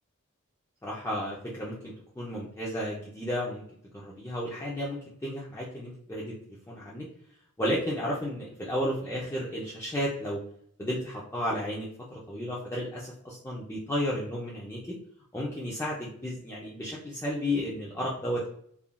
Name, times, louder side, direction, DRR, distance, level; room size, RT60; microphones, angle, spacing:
voice 1, 0.8-3.6 3.9-6.3 6.7-7.1 7.6-10.4 10.8-15.0 15.3-18.5, equal, 10° left, -5 dB, 0.4 m, -33 dB
3.5 x 2.3 x 2.2 m, 0.65 s
head